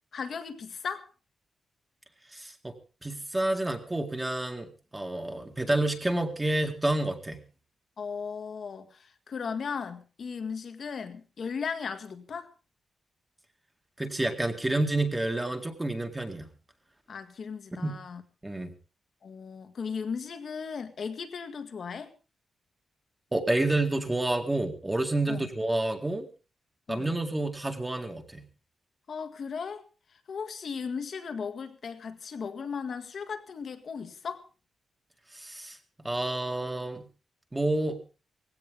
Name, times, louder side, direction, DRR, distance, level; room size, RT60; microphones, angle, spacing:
voice 1, 0.1-1.1 8.0-12.5 17.1-18.2 19.2-22.1 25.3-25.5 26.9-27.1 29.1-29.8 30.3-34.5, left 6 dB, 50° left, 1.8 m, -36 dB
voice 2, 2.3-2.7 3.0-7.4 14.0-16.5 17.8-18.0 18.4-18.7 23.3-26.3 26.9-28.5 35.3-35.8 36.0-37.1 37.5-38.0, right 2 dB, 10° right, 2.0 m, -29 dB
19.0 x 16.5 x 3.8 m
wide cardioid pair, 160°, 0 cm